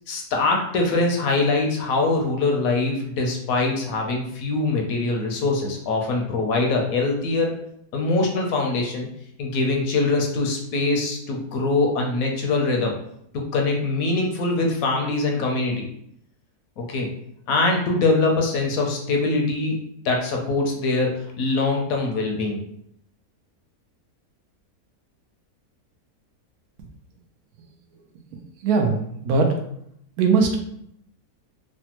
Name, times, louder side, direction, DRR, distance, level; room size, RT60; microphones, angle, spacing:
voice 1, 0.1-7.6 7.9-9.1 9.4-13.0 13.3-15.9 16.8-17.1 17.5-19.8 20.0-22.6, left 3 dB, 75° left, 1 dB, 1.0 m, -23 dB
voice 2, 28.6-29.6 30.2-30.6, right 4 dB, 75° right, 3 dB, 1.0 m, -20 dB
3.3 x 2.1 x 2.9 m, 0.72 s
omnidirectional pair, 1.6 m